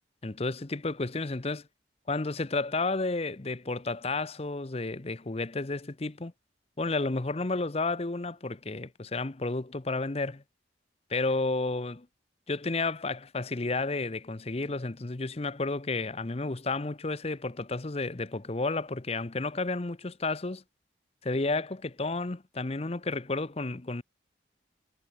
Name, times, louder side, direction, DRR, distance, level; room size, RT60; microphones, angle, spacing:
voice 1, 0.2-1.6 2.1-6.3 6.8-10.4 11.1-12.1 12.5-20.6 21.2-24.0, left 3 dB, 30° left, 0.8 m, -31 dB
head